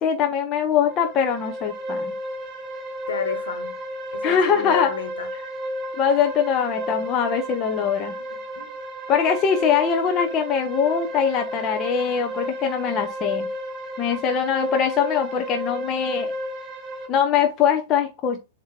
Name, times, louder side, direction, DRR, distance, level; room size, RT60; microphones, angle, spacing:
voice 1, 0.0-2.1 4.2-4.9 5.9-8.1 9.1-13.5 14.0-16.3 17.1-18.4, left 7 dB, 30° left, 0.8 m, -22 dB
sound 1, 0.7-17.1, equal, 25° right, 2.9 m, -32 dB
voice 2, 3.1-3.7 4.1-5.3 8.3-8.8, left 5 dB, 70° left, 1.6 m, -30 dB
7.3 x 2.9 x 4.4 m
figure-of-eight pair, 100°, 0 cm